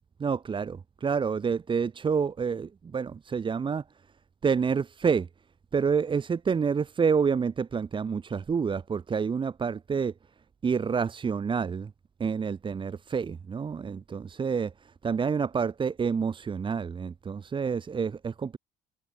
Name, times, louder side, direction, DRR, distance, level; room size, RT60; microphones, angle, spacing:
voice 1, 0.2-3.8 4.4-5.3 5.7-10.1 10.6-11.9 12.2-18.6, right 6 dB, 30° right, 2.5 m, -28 dB
cardioid pair, 115°, 17 cm